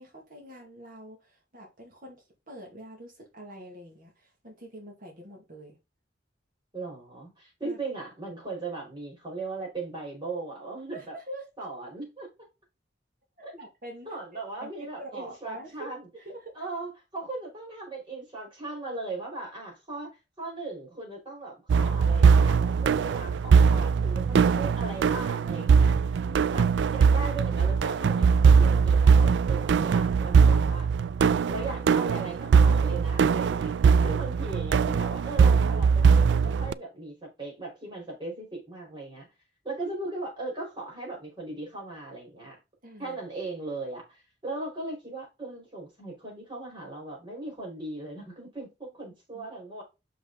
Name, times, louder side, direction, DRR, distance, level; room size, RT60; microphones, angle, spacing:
voice 1, 0.0-5.8 7.6-7.8 10.9-11.5 13.4-14.1 14.6-16.7 42.8-43.2 49.3-49.5, right 1 dB, 45° right, 2.3 m, -45 dB
voice 2, 6.7-11.1 11.6-12.3 13.4-13.5 14.0-16.1 16.5-20.1 20.4-26.2 26.5-30.9 31.2-33.7 34.0-39.3 39.6-42.6 43.0-49.8, right 2 dB, 25° right, 5.2 m, -38 dB
sound 1, 21.7-36.7, right 6 dB, 65° right, 0.3 m, -21 dB
6.5 x 5.6 x 3.9 m
head